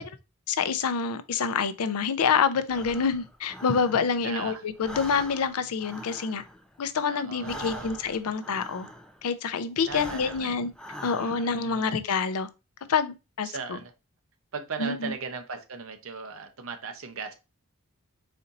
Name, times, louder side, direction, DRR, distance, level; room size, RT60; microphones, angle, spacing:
voice 1, 0.5-6.4 6.8-8.9 9.2-10.7 11.0-12.5 12.9-13.8 14.8-15.1, left 5 dB, 90° left, 0.5 m, -27 dB
Breathing, 2.6-4.4 4.7-9.3 9.8-11.7, equal, 5° left, 0.3 m, -43 dB
voice 2, 4.2-4.6 7.0-7.9 9.9-10.6 11.2-11.9 13.4-13.9 14.5-17.3, right 5 dB, 65° right, 0.8 m, -38 dB
4.2 x 2.6 x 4.0 m
head